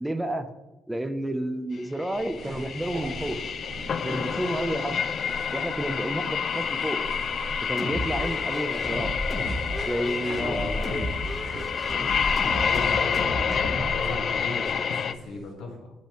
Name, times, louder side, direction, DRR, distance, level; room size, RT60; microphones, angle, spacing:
voice 1, 0.0-0.5 0.9-3.4 4.0-5.0 5.5-7.0 7.7-9.1 9.8-11.1, right 1 dB, 10° right, 9 dB, 0.5 m, -30 dB
sound 1, 2.0-15.1, left 7 dB, 55° left, 0.3 m, -29 dB
sound 2, 2.1-15.5, right 2 dB, 65° right, 1.3 m, -42 dB
sound 3, 7.8-14.0, equal, 10° left, 1.1 m, -33 dB
voice 2, 10.4-11.1 12.3-15.9, left 2 dB, 85° left, 1 dB, 1.5 m, -36 dB
6.8 x 5.5 x 3.0 m, 1.1 s
cardioid pair, 90°, 0 cm